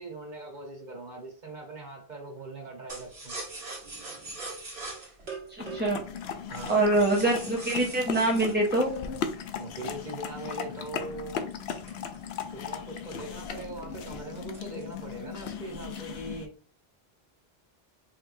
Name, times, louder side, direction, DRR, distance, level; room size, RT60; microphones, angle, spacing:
voice 1, 0.0-3.3 6.5-6.7 9.6-11.5 12.5-16.5, right 2 dB, 50° right, 0 dB, 1.4 m, -41 dB
sound 1, 2.9-9.8 10.4-12.8 13.2-13.3 13.6-13.9 14.4-15.1 15.4-15.9, right 3 dB, 80° right, 1.7 m, -42 dB
voice 2, 5.5-6.0 6.7-8.9, right 2 dB, 15° right, -3 dB, 0.4 m, -25 dB
sound 2, 5.6-16.5, left 7 dB, 85° left, 0.8 m, -37 dB
4.8 x 3.1 x 2.6 m, 0.40 s
omnidirectional pair, 1.0 m